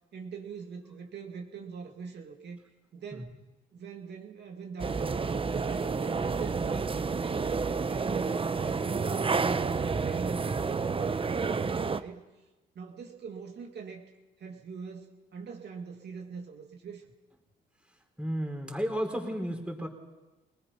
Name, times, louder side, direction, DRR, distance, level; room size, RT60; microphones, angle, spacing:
voice 1, 0.1-2.6 2.9-3.4 3.7-9.7 10.0-12.4 12.7-14.1 14.4-17.1, right 5 dB, 60° right, 2 dB, 2.2 m, -42 dB
sound 1, 4.8-12.0, right 4 dB, 25° right, 0.9 m, -30 dB
voice 2, 18.2-19.9, equal, 5° right, 2 dB, 4.3 m, -33 dB
25.0 x 18.5 x 5.7 m, 1.1 s
cardioid pair, 90°, 20 cm